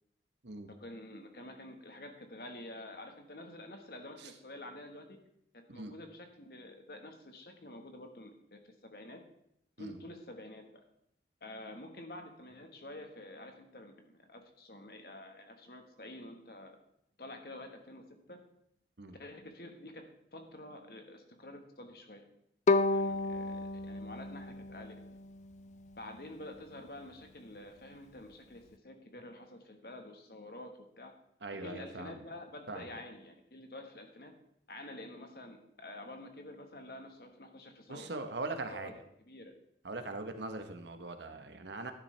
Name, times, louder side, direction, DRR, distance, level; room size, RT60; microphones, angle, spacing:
voice 1, 0.8-5.2 5.5-9.2 9.8-10.8 11.4-16.8 17.2-18.4 19.2-20.0 20.3-22.3 22.9-25.2 26.0-31.1 31.5-34.3 34.7-38.1 38.7-38.9 39.2-39.5, left 1 dB, 55° left, 5 dB, 1.4 m, -48 dB
Bowed string instrument, 22.7-25.7, left 3 dB, 40° left, 0.3 m, -32 dB
voice 2, 31.4-32.2 32.7-32.9 37.9-38.9 39.8-41.9, right 2 dB, 80° right, 7 dB, 1.1 m, -41 dB
12.0 x 10.0 x 3.3 m, 0.75 s
head